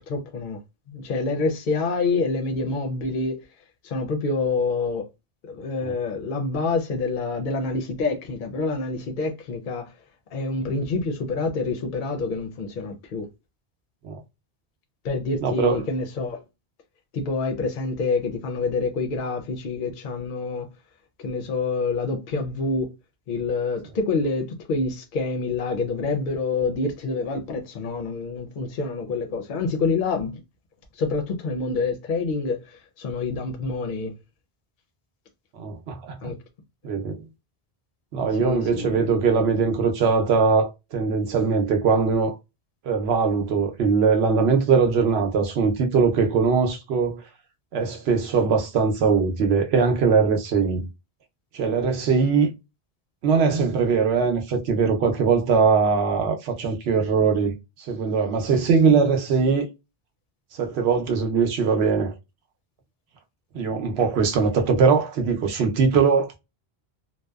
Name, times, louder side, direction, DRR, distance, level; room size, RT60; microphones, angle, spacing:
voice 1, 0.1-0.6 0.9-3.4 3.8-5.1 5.4-9.9 10.3-13.3 15.0-16.4 17.1-20.7 21.2-22.9 23.3-30.3 31.0-34.1 36.2-36.4 38.3-39.1, left 3 dB, 60° left, 0.6 m, -27 dB
voice 2, 15.4-15.8 35.6-36.1 36.8-37.2 38.1-42.4 42.8-47.2 47.7-50.9 51.5-52.5 53.2-57.5 57.9-59.7 60.6-62.1 63.5-66.4, right 5 dB, 75° right, 0.9 m, -21 dB
2.7 x 2.0 x 2.2 m
omnidirectional pair, 1.1 m